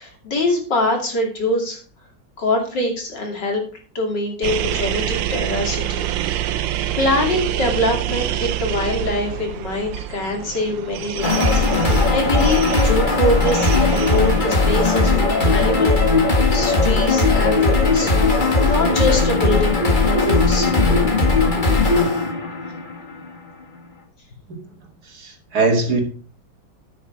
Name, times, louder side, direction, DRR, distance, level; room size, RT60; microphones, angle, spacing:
voice 1, 0.0-1.8 2.4-3.6 3.9-6.3 7.0-11.7 12.1-16.0 16.5-20.7, left 1 dB, 65° left, 1 dB, 3.3 m, -24 dB
sound 1, 4.4-15.9, right 12 dB, 80° right, 1.5 m, -27 dB
sound 2, 11.2-23.3, left 3 dB, 25° left, 1.7 m, -18 dB
voice 2, 25.1-26.0, right 3 dB, 55° right, 3 dB, 2.5 m, -21 dB
9.8 x 8.4 x 4.5 m, 0.40 s
omnidirectional pair, 2.0 m